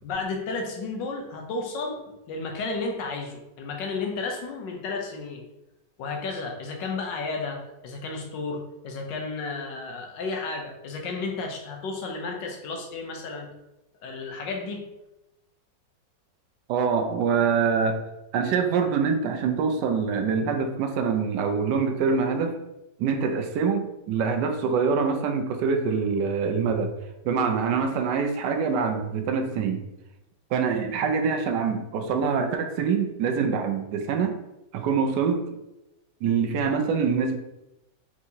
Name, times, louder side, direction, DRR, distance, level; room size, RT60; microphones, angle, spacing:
voice 1, 0.0-2.0 2.3-5.4 6.0-13.5 14.0-14.8, left 3 dB, 85° left, 2 dB, 1.4 m, -32 dB
voice 2, 16.7-18.0 18.3-22.6 23.0-26.9 27.2-29.8 30.5-34.4 34.7-35.4 36.2-37.4, right 5 dB, 75° right, 5 dB, 1.1 m, -25 dB
4.3 x 3.5 x 2.8 m, 0.93 s
omnidirectional pair, 1.9 m